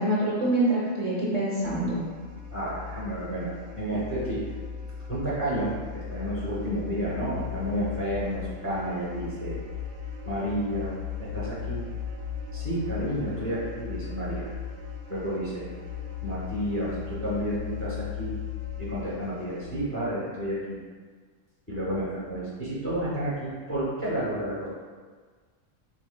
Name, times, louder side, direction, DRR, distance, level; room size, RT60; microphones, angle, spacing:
voice 1, 0.0-2.0, right 1 dB, 45° right, -7 dB, 0.5 m, -25 dB
sound 1, 1.6-19.8, left 8 dB, 70° right, 0.8 m, -37 dB
voice 2, 2.5-4.4 5.1-9.6 10.3-10.9 11.2-11.8 12.5-14.5 15.1-15.6 16.2-18.4 18.8-20.8 21.7-24.7, right 1 dB, 15° left, -7 dB, 0.5 m, -31 dB
4.3 x 2.8 x 2.2 m, 1.5 s
omnidirectional pair, 1.3 m